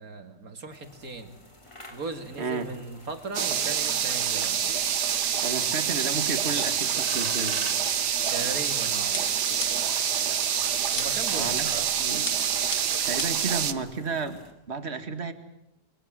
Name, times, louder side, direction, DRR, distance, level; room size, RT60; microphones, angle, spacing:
voice 1, 0.0-1.3 1.9-4.6 8.3-9.3 10.9-11.9, right 3 dB, 60° right, 7 dB, 2.8 m, -37 dB
sound 1, 0.7-14.5, left 1 dB, 20° left, 4.2 m, -48 dB
voice 2, 2.4-2.7 5.4-7.6 11.0-12.3 13.1-14.4 14.7-15.3, right 4 dB, 40° right, 8 dB, 2.2 m, -32 dB
sound 2, 3.3-13.7, right 8 dB, 85° right, 1.8 m, -26 dB
sound 3, 9.1-10.1 11.0-11.4 12.3-13.5, left 6 dB, 65° left, 2.0 m, -38 dB
30.0 x 21.5 x 7.7 m, 0.79 s
omnidirectional pair, 1.7 m